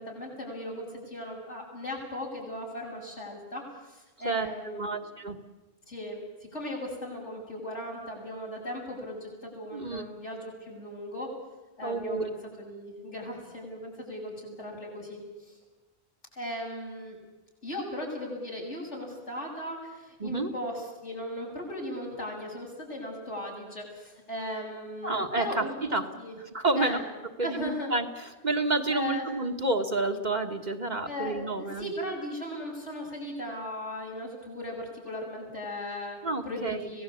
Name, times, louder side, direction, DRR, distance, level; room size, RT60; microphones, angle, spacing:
voice 1, 0.0-5.1 5.9-11.3 11.8-15.6 16.3-17.2 17.6-26.4 26.8-27.0 27.4-27.9 28.9-29.3 31.1-36.2 36.4-37.0, left 1 dB, 85° left, -2 dB, 7.7 m, -37 dB
voice 2, 4.2-5.4 9.7-10.0 11.8-12.3 20.2-20.5 25.0-25.7 25.9-26.1 26.5-27.0 27.4-31.9 36.2-36.9, right 2 dB, 40° right, 5 dB, 1.6 m, -29 dB
26.0 x 18.0 x 8.5 m, 1.2 s
omnidirectional pair, 1.2 m